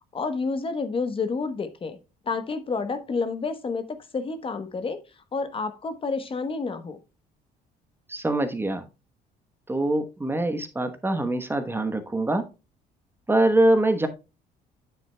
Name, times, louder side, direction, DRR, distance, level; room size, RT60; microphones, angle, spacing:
voice 1, 0.1-2.0 2.3-5.0 5.3-7.0, left 4 dB, 30° left, 1.0 m, -29 dB
voice 2, 8.1-8.9 9.7-12.4 13.3-14.1, right 1 dB, 15° right, 1.0 m, -23 dB
9.3 x 7.4 x 2.2 m
cardioid pair, 110°, 17 cm